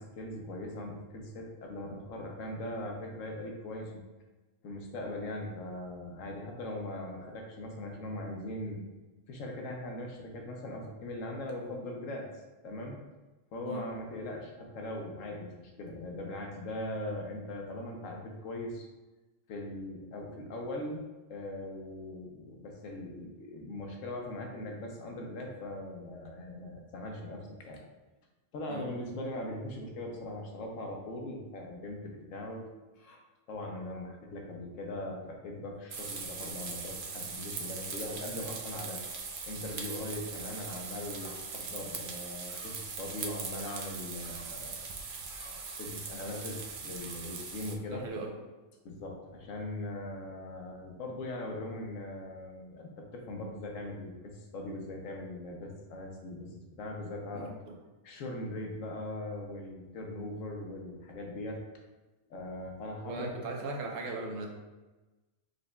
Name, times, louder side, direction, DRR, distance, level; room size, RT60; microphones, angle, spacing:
voice 1, 0.0-4.0 4.6-8.8 9.3-12.3 12.6-13.0 13.5-18.9 19.5-21.0 21.3-27.8 28.5-32.7 33.0-33.2 33.5-39.0 39.5-44.8 45.4-48.1 48.8-57.5 58.0-61.6 62.3-63.3, left 1 dB, 80° left, 1 dB, 1.1 m, -40 dB
sound 1, 35.9-47.7, right 5 dB, 60° right, 0.6 m, -40 dB
Gull seagull, 39.0-48.1, left 3 dB, 55° left, 0.6 m, -58 dB
voice 2, 47.9-48.3 57.3-57.8 63.0-64.5, right 2 dB, 80° right, 1 dB, 1.1 m, -38 dB
5.0 x 3.8 x 2.2 m, 1.1 s
omnidirectional pair, 1.3 m